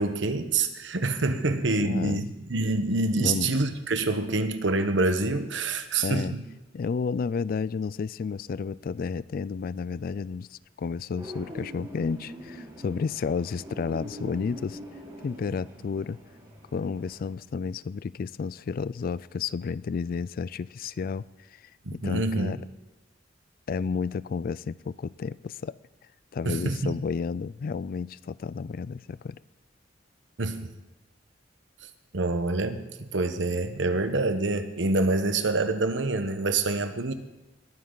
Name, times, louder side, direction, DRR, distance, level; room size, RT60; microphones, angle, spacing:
voice 1, 0.0-6.4 21.8-22.6 26.4-26.9 30.4-30.7 32.1-37.1, right 2 dB, 75° right, 1.1 m, -26 dB
voice 2, 1.8-2.3 3.2-3.6 6.0-6.4 6.7-14.8 15.2-16.2 16.7-21.2 21.5-21.6 21.9-22.6 23.7-25.8 26.3-29.4, left 5 dB, 50° left, 0.3 m, -31 dB
sound 1, 11.2-17.3, equal, 30° right, 4.3 m, -43 dB
21.0 x 9.7 x 3.9 m
head